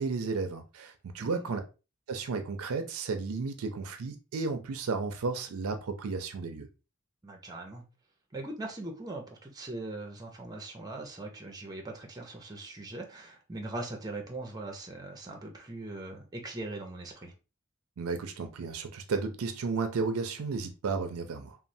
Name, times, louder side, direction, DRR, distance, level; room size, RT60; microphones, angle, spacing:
voice 1, 0.0-1.6 2.1-6.7 18.0-21.6, right 4 dB, 80° right, 0.5 m, -33 dB
voice 2, 7.2-7.9 8.3-17.3, right 2 dB, 20° right, 0.5 m, -40 dB
3.0 x 2.0 x 2.6 m
head